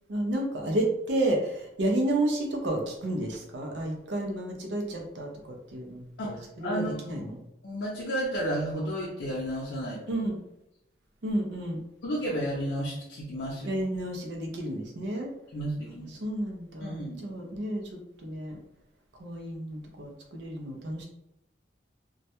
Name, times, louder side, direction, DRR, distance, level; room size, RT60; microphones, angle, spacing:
voice 1, 0.1-7.4 10.1-10.4 11.2-11.8 13.6-15.3 16.1-18.6 19.2-21.1, right 1 dB, 70° right, 2 dB, 0.5 m, -31 dB
voice 2, 6.2-7.3 7.6-10.1 12.0-13.7 15.5-16.2 16.8-17.2, equal, 70° left, -5 dB, 0.5 m, -32 dB
2.2 x 2.1 x 2.8 m, 0.83 s
head